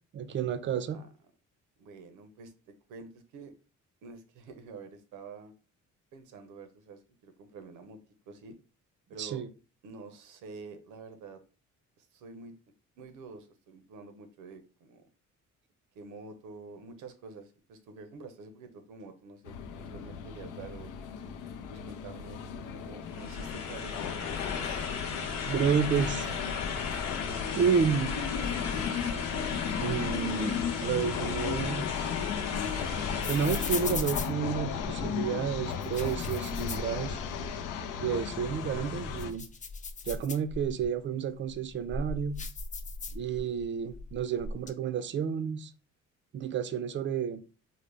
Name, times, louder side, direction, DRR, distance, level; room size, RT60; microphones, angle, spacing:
voice 1, 0.1-1.0 9.2-9.5 25.4-26.3 27.5-28.3 29.8-32.2 33.3-37.2 38.0-39.4 40.0-42.4 43.1-45.7 46.3-47.4, right 7 dB, 40° right, 0.4 m, -30 dB
voice 2, 1.8-3.5 4.0-5.5 6.1-8.0 8.3-8.6 9.1-9.4 9.8-11.4 12.0-12.6 13.0-15.0 15.9-20.9 21.7-22.4 22.7-24.8 38.6-39.0, right 4 dB, 90° right, 0.7 m, -48 dB
sound 1, 19.4-39.3, left 7 dB, 90° left, 0.5 m, -36 dB
sound 2, 23.1-33.9, left 5 dB, 65° left, 0.9 m, -36 dB
sound 3, 31.7-35.1 35.7-37.5 37.9-38.0 38.5-40.9 41.5-43.6 43.9-44.7, left 3 dB, 25° left, 0.4 m, -38 dB
3.8 x 2.1 x 3.2 m
cardioid pair, 90°, 30 cm